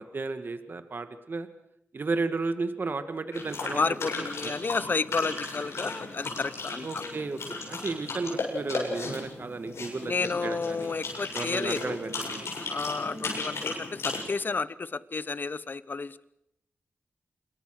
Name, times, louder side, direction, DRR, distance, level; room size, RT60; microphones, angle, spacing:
voice 1, 0.0-1.5 1.9-3.9 4.4-4.5 6.8-10.9 11.3-12.5, right 3 dB, 50° right, 10 dB, 1.8 m, -33 dB
sound 1, 3.3-14.2, left 3 dB, 90° left, 7.5 m, -36 dB
voice 2, 3.7-7.0 10.0-12.0 12.7-16.3, left 4 dB, 50° left, 18 dB, 0.9 m, -31 dB
27.0 x 22.5 x 6.5 m, 0.76 s
wide cardioid pair, 90°, 4 cm